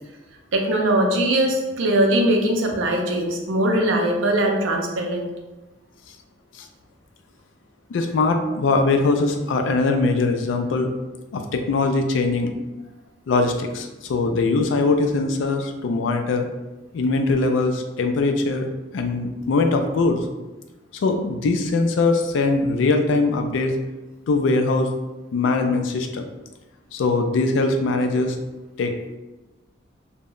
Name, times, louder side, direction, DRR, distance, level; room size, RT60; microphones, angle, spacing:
voice 1, 0.5-5.3, right 1 dB, 85° right, 1 dB, 0.5 m, -21 dB
voice 2, 7.9-10.9 11.3-12.5 13.3-16.5 16.9-18.7 18.9-20.2 21.0-23.8 24.3-24.9 25.3-26.3 26.9-28.4 28.8-29.1, left 3 dB, 75° left, 5 dB, 0.3 m, -21 dB
2.1 x 2.0 x 3.6 m, 1.1 s
head